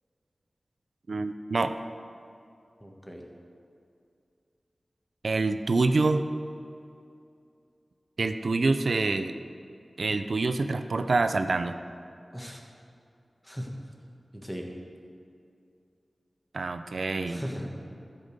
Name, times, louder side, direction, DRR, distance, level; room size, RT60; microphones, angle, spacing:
voice 1, 1.1-1.7 5.2-6.3 8.2-9.3 10.0-11.8 16.5-17.4, right 3 dB, 70° right, 9 dB, 0.5 m, -26 dB
voice 2, 2.8-3.2 12.3-12.6 13.4-13.7 14.3-14.7 17.3-17.7, equal, ahead, 0 dB, 1.6 m, -37 dB
13.5 x 5.4 x 6.5 m, 2.5 s
wide cardioid pair, 60°, 0 cm